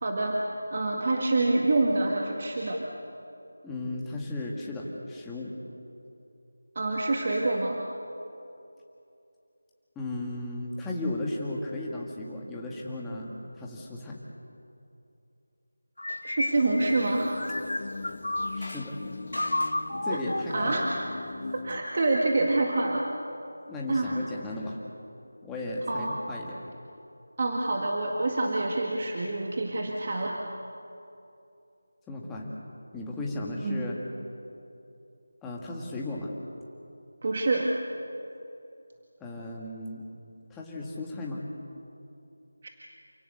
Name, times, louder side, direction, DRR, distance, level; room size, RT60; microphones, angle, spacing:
voice 1, 0.0-0.4 0.7-2.8 6.8-7.8 16.2-17.4 20.1-20.2 20.5-20.9 21.5-23.1 23.9-24.1 25.9-26.1 27.4-30.4 33.6-33.9 37.2-37.7, right 2 dB, 40° right, 0 dB, 2.0 m, -26 dB
voice 2, 3.6-5.6 10.0-14.2 18.5-19.0 20.0-20.9 23.7-24.8 25.4-26.6 32.1-32.5 32.9-34.0 35.4-36.3 39.2-40.0 40.5-41.4, left 2 dB, 5° left, -3 dB, 1.9 m, -35 dB
sound 1, 16.0-18.8 19.3-21.1, left 1 dB, 90° left, 1.6 m, -32 dB
sound 2, 16.8-21.8, left 3 dB, 45° left, 1.1 m, -39 dB
28.5 x 17.5 x 7.9 m, 2.7 s
figure-of-eight pair, 170°, 0 cm